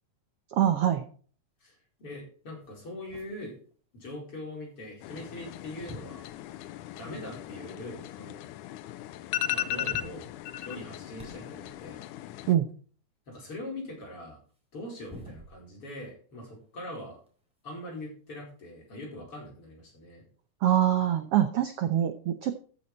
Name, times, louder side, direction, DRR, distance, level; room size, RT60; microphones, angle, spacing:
voice 1, 0.5-1.1 12.5-12.7 20.6-22.5, right 11 dB, 75° right, 8 dB, 1.4 m, -24 dB
voice 2, 1.6-3.5 3.9-6.3 7.0-8.5 9.5-10.3 10.6-12.0 13.3-14.4 14.7-17.2 17.6-20.2, left 1 dB, 45° left, -2 dB, 5.4 m, -42 dB
sound 1, 2.0-2.1 2.5-5.5 5.8-7.5 8.1-8.2 8.4-8.5 9.3-9.4 9.6-12.0 14.5-15.9 16.3-18.5 19.6-19.7 20.7-20.8, equal, ahead, 3.7 m, -52 dB
sound 2, 5.0-12.5, left 13 dB, 80° left, 2.1 m, -37 dB
14.0 x 7.0 x 4.3 m, 0.42 s
omnidirectional pair, 3.7 m